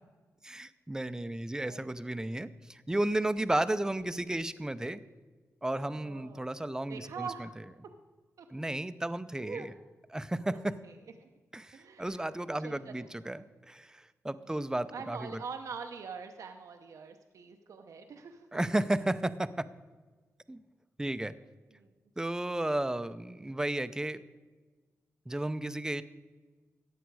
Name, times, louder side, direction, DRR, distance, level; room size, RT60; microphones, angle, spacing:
voice 1, 0.4-5.0 5.6-7.3 8.5-9.7 10.1-10.8 11.5-15.4 18.5-19.7 20.5-20.6 21.0-21.3 22.2-24.2 25.3-26.0, right 1 dB, 10° right, 13 dB, 0.6 m, -33 dB
voice 2, 1.3-1.8 5.8-6.5 6.9-7.5 8.4-8.5 9.3-9.7 10.5-10.9 11.2-11.3 11.7-12.2 12.6-13.1 14.4-14.6 14.9-18.5 21.8-21.9, right 5 dB, 80° right, 5 dB, 0.7 m, -44 dB
14.5 x 9.4 x 4.7 m, 1.3 s
cardioid pair, 75°, 6 cm